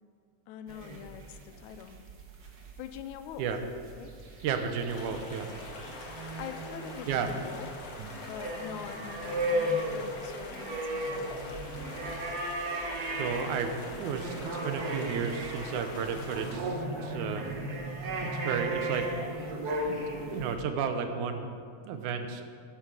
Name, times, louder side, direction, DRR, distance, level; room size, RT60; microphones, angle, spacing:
voice 1, 0.5-2.0 2.8-3.5 3.9-4.2 6.4-7.9 8.2-11.3, left 9 dB, 85° left, 9 dB, 2.0 m, -44 dB
sound 1, 0.7-20.5, right 1 dB, 50° right, 1.2 m, -36 dB
voice 2, 4.4-5.5 7.1-7.3 8.0-8.1 13.0-17.5 18.2-19.1 19.9-20.0 20.3-21.5 21.8-22.4, right 6 dB, 90° right, 7 dB, 2.3 m, -33 dB
sound 2, 4.9-16.6, left 2 dB, 60° left, 2.5 m, -44 dB
12.5 x 9.8 x 4.8 m, 2.2 s
omnidirectional pair, 3.4 m